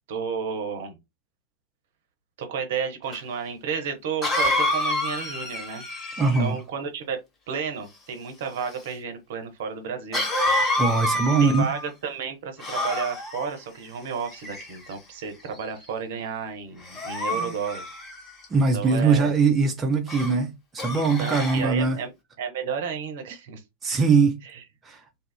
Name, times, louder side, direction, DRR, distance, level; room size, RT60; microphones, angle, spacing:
voice 1, 0.1-1.0 2.4-5.8 6.4-7.2 7.5-10.2 11.4-17.8 18.7-19.3 20.9-22.1 22.4-23.6 24.4-24.6, right 6 dB, 55° right, 0.7 m, -32 dB
Cough, 3.1-3.2 4.2-6.6 10.1-11.9 12.6-13.5 14.3-14.9 15.5-15.8 16.8-18.5 20.1-20.3 20.8-21.7, left 1 dB, 20° left, 1.0 m, -28 dB
voice 2, 6.2-6.6 10.8-11.6 17.3-17.5 18.5-22.0 23.8-24.4 24.8-25.0, right 4 dB, 20° right, 0.4 m, -21 dB
2.7 x 2.3 x 2.2 m
figure-of-eight pair, 90°, 0 cm